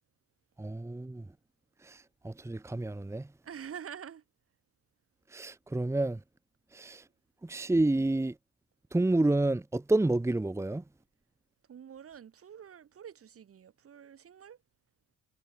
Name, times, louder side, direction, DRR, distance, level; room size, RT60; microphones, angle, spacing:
voice 1, 0.6-1.3 1.8-3.3 5.3-6.2 6.7-7.0 7.4-8.3 8.9-10.8, right 2 dB, 10° right, 1.0 m, -29 dB
voice 2, 3.4-4.2 11.7-14.6, right 8 dB, 50° right, 1.9 m, -46 dB
cardioid pair, 90°, 30 cm